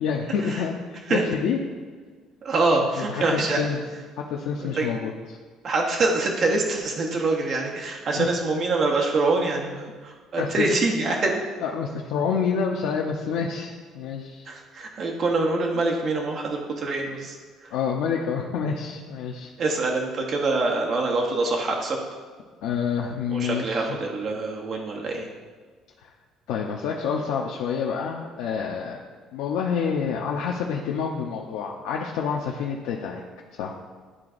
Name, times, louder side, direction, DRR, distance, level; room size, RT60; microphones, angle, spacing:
voice 1, 0.0-0.8 1.1-1.6 3.0-3.8 4.2-5.1 8.1-8.3 10.4-10.7 11.6-14.5 17.7-19.5 22.6-24.0 26.0-26.1 26.5-29.0 29.3-33.2 33.6-33.7, left 6 dB, 80° left, -1 dB, 0.6 m, -28 dB
voice 2, 2.4-3.6 4.6-4.9 5.6-11.4 14.5-17.3 17.6-17.7 19.6-22.0 23.3-25.3, right 3 dB, 35° right, 0 dB, 0.8 m, -25 dB
11.0 x 3.9 x 2.5 m, 1.5 s
cardioid pair, 175°, 0 cm